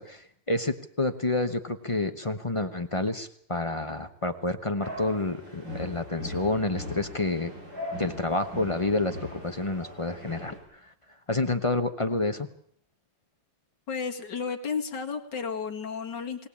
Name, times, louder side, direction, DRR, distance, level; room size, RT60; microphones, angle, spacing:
voice 1, 0.0-7.5 8.0-10.6 11.3-12.5, left 2 dB, 25° left, 8 dB, 0.8 m, -29 dB
sound 1, 4.8-10.6, left 1 dB, 80° right, 8.1 m, -39 dB
voice 2, 13.9-16.5, left 5 dB, 70° left, 3 dB, 2.5 m, -32 dB
21.5 x 18.0 x 8.5 m, 0.64 s
omnidirectional pair, 2.0 m